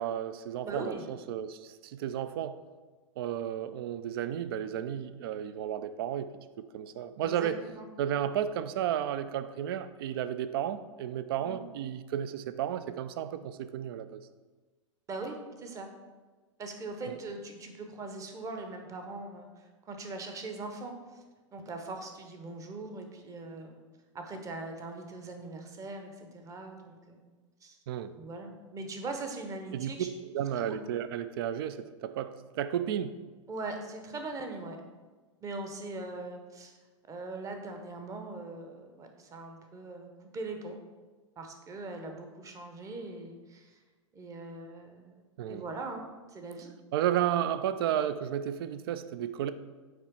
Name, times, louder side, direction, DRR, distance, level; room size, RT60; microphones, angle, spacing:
voice 1, 0.0-2.6 3.2-6.3 6.6-7.6 8.0-14.2 17.1-17.2 27.9-28.1 29.7-29.9 30.3-33.1 45.4-45.6 46.9-49.5, right 10 dB, 50° right, 13 dB, 0.4 m, -33 dB
voice 2, 0.6-1.0 7.2-7.5 7.8-7.9 11.4-11.6 15.1-15.9 16.6-21.2 21.5-23.8 24.1-27.2 27.6-27.8 28.2-30.1 30.6-30.8 33.5-34.8 35.4-36.7 37.1-40.8 41.4-43.8 44.1-46.7, right 3 dB, 20° right, 5 dB, 0.9 m, -41 dB
8.6 x 3.2 x 4.5 m, 1.3 s
figure-of-eight pair, 95°, 16 cm